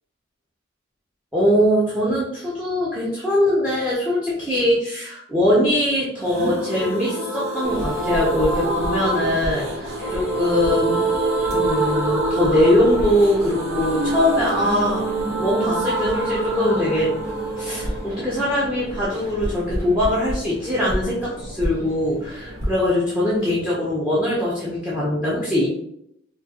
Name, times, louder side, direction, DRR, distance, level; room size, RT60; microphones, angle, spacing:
voice 1, 1.3-11.1 11.5-15.0 15.4-17.1 17.6-25.7, left 1 dB, 5° right, -6 dB, 0.7 m, -22 dB
sound 1, 6.3-19.9 20.2-20.3 20.5-20.6, right 2 dB, 70° right, 0.6 m, -26 dB
sound 2, 7.6-22.7, equal, 50° right, 1.4 m, -33 dB
4.3 x 2.4 x 2.4 m, 0.75 s
head